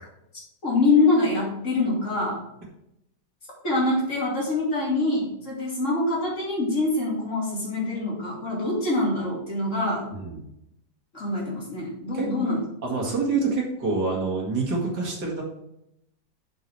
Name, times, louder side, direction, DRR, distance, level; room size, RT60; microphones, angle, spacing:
voice 1, 0.6-2.5 3.6-10.0 11.1-12.6 12.9-13.1, left 2 dB, 45° left, -4 dB, 3.0 m, -25 dB
voice 2, 10.1-10.4 12.1-12.3 12.8-15.4, right 4 dB, 70° right, -2 dB, 2.6 m, -26 dB
6.9 x 6.1 x 4.6 m, 0.80 s
omnidirectional pair, 1.8 m